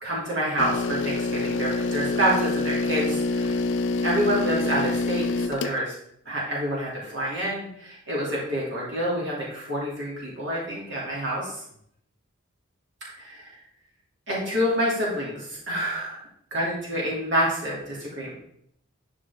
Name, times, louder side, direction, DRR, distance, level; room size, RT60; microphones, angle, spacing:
voice 1, 0.0-3.6 4.0-5.9 6.2-11.6 13.1-13.5 14.3-18.3, equal, 55° right, -6 dB, 2.8 m, -28 dB
sound 1, 0.6-5.8, left 3 dB, 60° left, 0.5 m, -26 dB
12.0 x 4.9 x 3.6 m, 0.72 s
head